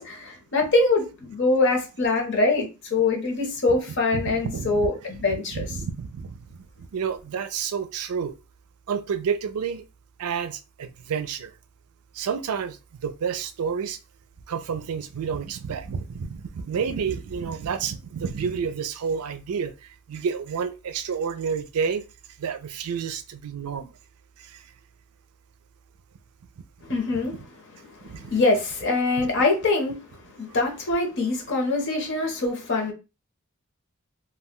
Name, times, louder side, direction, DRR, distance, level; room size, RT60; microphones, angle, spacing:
voice 1, 0.0-5.7 26.9-27.4 28.0-30.0 30.4-32.9, left 3 dB, 55° left, 0.9 m, -24 dB
voice 2, 4.1-6.4 6.8-8.3 8.9-9.8 10.2-11.5 12.1-12.8 13.0-14.0 14.5-19.7 20.1-22.0 22.4-23.9 24.4-24.6 28.1-28.3 29.2-29.3, right 6 dB, 90° right, 0.4 m, -30 dB
2.3 x 2.2 x 3.6 m
head